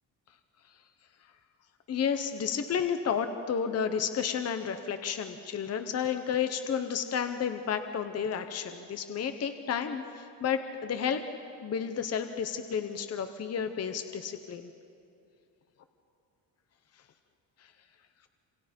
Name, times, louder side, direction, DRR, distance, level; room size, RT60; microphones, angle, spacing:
voice 1, 1.9-11.2 11.6-14.7, left 7 dB, 35° left, 8 dB, 0.9 m, -31 dB
27.5 x 26.5 x 5.2 m, 2.5 s
cardioid pair, 175°, 42 cm